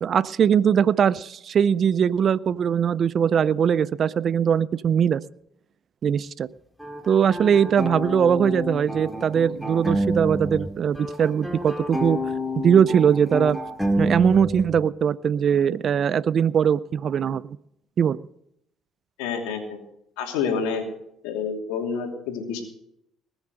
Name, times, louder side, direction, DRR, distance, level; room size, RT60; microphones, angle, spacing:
voice 1, 0.0-5.2 6.0-6.5 7.1-12.2 12.6-13.6 14.0-17.6 18.0-18.2, right 8 dB, 50° right, 19 dB, 0.4 m, -21 dB
sound 1, 6.8-10.7 10.9-14.8, equal, ahead, 2.3 m, -28 dB
voice 2, 19.2-19.8 20.2-20.8 21.2-22.6, left 6 dB, 85° left, 3 dB, 2.7 m, -28 dB
20.5 x 7.2 x 6.5 m, 0.76 s
supercardioid pair, 70°, 0 cm